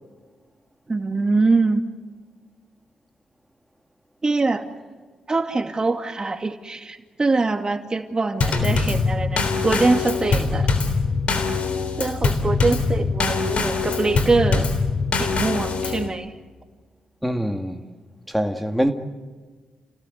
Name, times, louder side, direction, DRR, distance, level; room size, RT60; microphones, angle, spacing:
voice 1, 0.9-1.8 4.2-4.7 5.3-10.7 12.0-14.7 15.2-16.3, right 3 dB, 35° right, 2.4 m, -23 dB
Drum kit / Snare drum / Bass drum, 8.4-16.1, left 4 dB, 65° left, 3.6 m, -23 dB
voice 2, 17.2-17.8 18.3-18.9, equal, ahead, 2.2 m, -24 dB
29.5 x 17.5 x 8.1 m
supercardioid pair, 45°, 2 cm